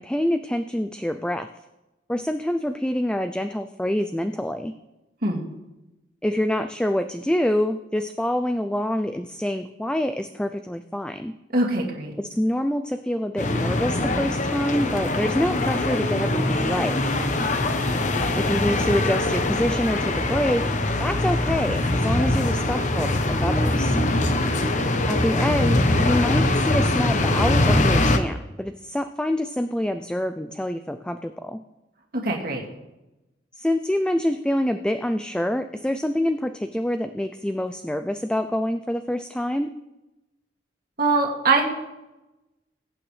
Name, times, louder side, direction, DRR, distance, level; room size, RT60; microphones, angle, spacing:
voice 1, 0.0-1.5 2.1-4.7 6.2-11.3 12.2-17.0 18.4-24.0 25.1-31.6 33.6-39.7, left 1 dB, 5° left, 8 dB, 0.4 m, -26 dB
voice 2, 11.5-12.1 32.1-32.6 41.0-41.6, right 3 dB, 55° right, -1 dB, 2.3 m, -22 dB
sound 1, 13.4-28.2, left 2 dB, 45° left, 0.9 m, -22 dB
21.0 x 8.8 x 3.3 m, 1.0 s
head